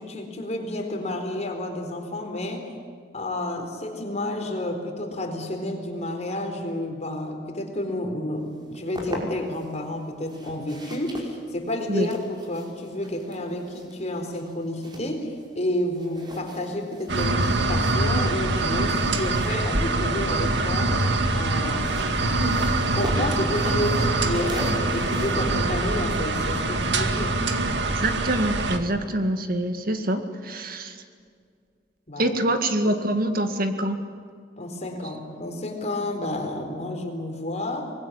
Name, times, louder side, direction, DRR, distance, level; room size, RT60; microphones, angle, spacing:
voice 1, 0.0-2.7 3.1-12.2 12.5-21.0 21.3-27.4 32.1-32.4 34.6-37.9, left 1 dB, 40° left, 4 dB, 4.2 m, -30 dB
sound 1, 8.5-9.7 10.2-15.7 15.9-20.6 21.6-27.1, equal, 25° right, 5.1 m, -39 dB
sound 2, 17.1-28.8, right 2 dB, 80° right, 2.2 m, -24 dB
voice 2, 28.0-31.0 32.2-34.0, right 1 dB, 55° right, 7 dB, 2.0 m, -25 dB
24.5 x 21.0 x 10.0 m, 2.1 s
head